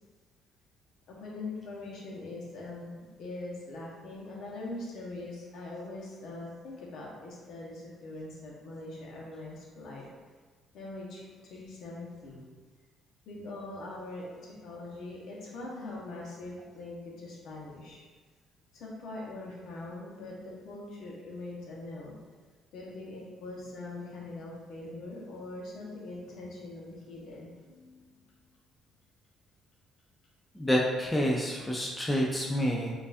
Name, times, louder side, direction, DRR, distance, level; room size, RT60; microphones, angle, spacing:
voice 1, 1.1-10.1 10.7-11.2 11.5-12.4 13.3-18.0 18.7-22.2 22.7-28.1, left 2 dB, 70° left, -3 dB, 1.0 m, -42 dB
voice 2, 30.5-32.9, equal, 10° left, -2 dB, 0.5 m, -28 dB
4.5 x 2.5 x 2.5 m, 1.4 s
cardioid pair, 90°, 0 cm